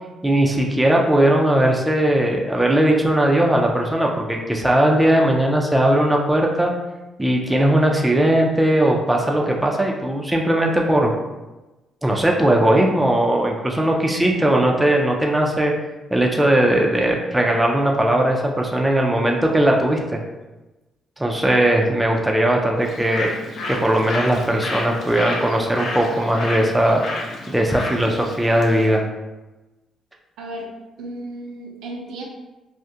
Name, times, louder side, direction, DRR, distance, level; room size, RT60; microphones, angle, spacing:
voice 1, 0.2-6.7 7.2-11.1 12.0-15.7 16.1-20.2 21.2-23.3 23.7-27.0 27.5-29.0, right 1 dB, 10° right, 0 dB, 0.4 m, -18 dB
Bird, 22.8-28.9, left 2 dB, 60° left, 0.5 m, -31 dB
voice 2, 30.4-30.7 31.0-32.2, right 1 dB, 90° right, -1 dB, 0.5 m, -34 dB
2.3 x 2.1 x 2.7 m, 1.1 s
cardioid pair, 90°, 0 cm